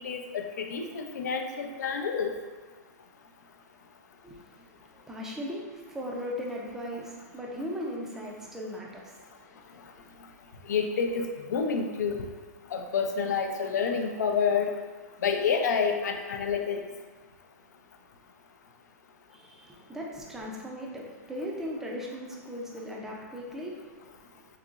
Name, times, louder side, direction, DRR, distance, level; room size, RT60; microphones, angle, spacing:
voice 1, 0.0-2.3 10.7-12.2 12.7-14.7 15.2-16.8, left 6 dB, 80° left, 5 dB, 0.4 m, -28 dB
voice 2, 4.2-9.2 10.0-10.1 19.3-24.1, equal, 5° right, -2 dB, 0.4 m, -38 dB
3.9 x 2.8 x 2.4 m, 1.4 s
hypercardioid pair, 155°, 9 cm